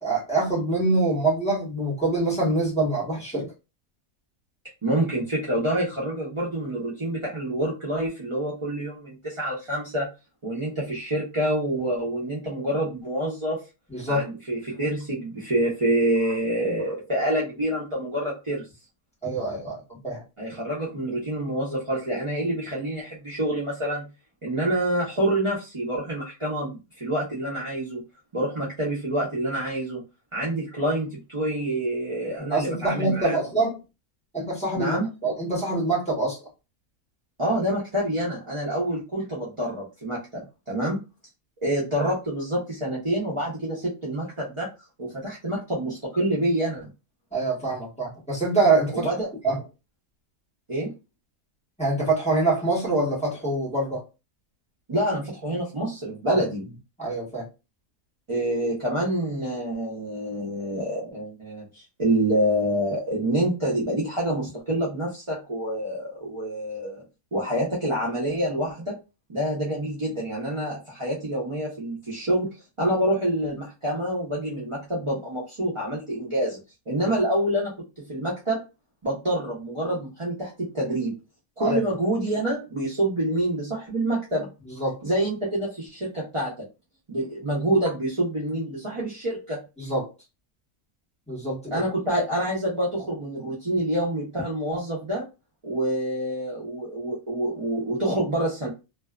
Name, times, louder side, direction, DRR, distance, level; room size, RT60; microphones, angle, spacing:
voice 1, 0.0-3.5 13.9-14.3 19.2-20.2 32.5-33.8 34.3-36.4 47.3-49.1 49.4-49.6 51.8-54.0 56.3-56.4 57.0-57.4 81.6-81.8 84.8-84.9 89.8-90.1 91.3-91.7, right 2 dB, 5° left, 0.9 m, -25 dB
voice 2, 4.8-10.1 10.4-13.6 14.1-18.7 20.4-24.1 24.4-28.0 28.3-30.0 30.3-33.4 34.7-35.1 37.4-41.0 41.6-44.7 45.0-46.9 48.9-49.3 50.7-50.9 54.9-56.6 58.3-67.0 67.3-69.0 69.3-76.6 76.9-78.6 79.0-81.2 81.6-84.5 85.0-86.7 87.1-89.6 91.7-95.3 95.6-98.7, right 1 dB, 35° right, 0.4 m, -27 dB
2.6 x 2.3 x 2.3 m
omnidirectional pair, 1.6 m